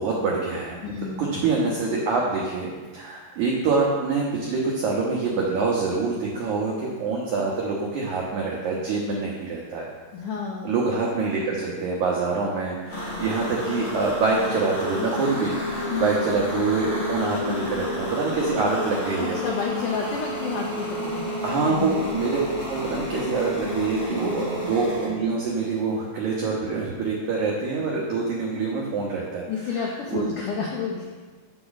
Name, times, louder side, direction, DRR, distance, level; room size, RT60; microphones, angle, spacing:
voice 1, 0.0-0.8 1.2-9.9 10.6-19.4 21.4-22.4 22.7-29.5 30.1-30.3, right 4 dB, 85° right, -3 dB, 1.7 m, -25 dB
voice 2, 0.8-1.3 10.1-10.7 15.9-16.1 19.2-21.3 21.7-22.0 24.2-24.6 29.5-31.1, left 5 dB, 85° left, -1 dB, 1.8 m, -30 dB
sound 1, 12.9-25.1, left 1 dB, 50° left, 2.8 m, -30 dB
7.1 x 6.7 x 4.0 m, 1.4 s
omnidirectional pair, 4.6 m